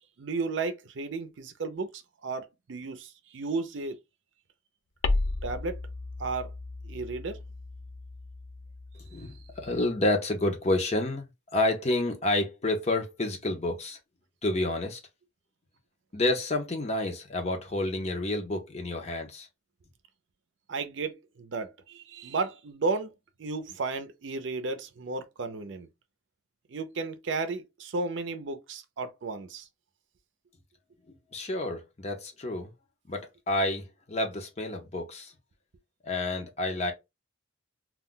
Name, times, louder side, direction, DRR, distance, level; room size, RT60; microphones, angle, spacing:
voice 1, 0.2-4.0 5.4-5.8 6.2-6.5 6.8-7.4 20.7-23.1 23.4-25.9 26.7-29.7, right 3 dB, 70° right, 0.5 m, -33 dB
sound 1, 5.0-9.9, left 2 dB, 70° left, 0.4 m, -34 dB
voice 2, 9.1-14.0 14.4-15.0 16.1-19.5 31.3-32.7 33.1-35.3 36.0-36.9, left 2 dB, 35° left, 0.7 m, -29 dB
2.3 x 2.2 x 3.7 m
head